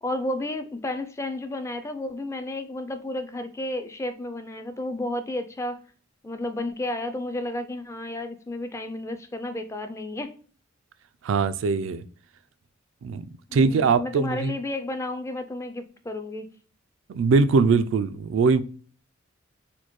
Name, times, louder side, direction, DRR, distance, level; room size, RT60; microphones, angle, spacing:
voice 1, 0.0-5.8 6.2-10.3 13.5-16.5, left 1 dB, 15° left, 0.3 m, -32 dB
voice 2, 11.2-12.0 13.0-13.2 13.5-14.6 17.1-18.6, right 4 dB, 65° right, 0.3 m, -21 dB
4.3 x 2.1 x 2.9 m
head